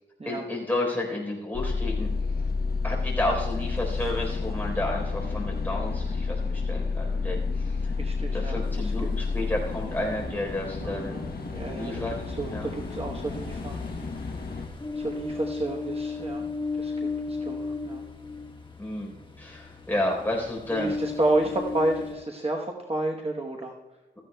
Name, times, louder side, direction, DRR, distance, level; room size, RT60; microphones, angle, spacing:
voice 1, 0.3-2.1 2.8-7.9 8.3-11.2 11.7-12.2 12.5-12.7 18.8-20.9, left 1 dB, 10° left, -1 dB, 3.8 m, -31 dB
sound 1, 1.5-14.7, left 4 dB, 50° left, 0.9 m, -30 dB
voice 2, 8.0-9.1 10.8-12.0 12.3-13.8 14.9-16.5 16.7-18.1 20.7-23.7, right 2 dB, 30° right, 0 dB, 1.1 m, -31 dB
Ocean, 8.6-22.2, left 4 dB, 25° left, 1.4 m, -37 dB
16.0 x 14.0 x 2.2 m, 1.1 s
wide cardioid pair, 130°, 19 cm